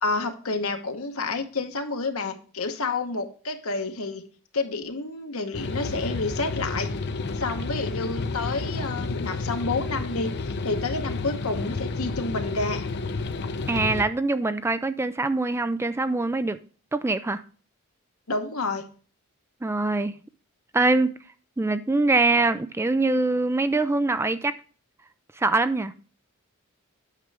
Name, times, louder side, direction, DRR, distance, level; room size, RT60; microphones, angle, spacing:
voice 1, 0.0-4.2 4.5-6.9 7.4-12.9 18.3-18.8, left 3 dB, 70° left, 1.1 m, -29 dB
sound 1, 5.5-14.0, left 3 dB, 50° left, 0.6 m, -30 dB
voice 2, 13.7-16.6 16.9-17.4 19.6-20.2 20.7-21.1 21.6-24.5 25.4-25.9, right 3 dB, 10° right, 0.3 m, -23 dB
9.0 x 6.0 x 3.3 m
head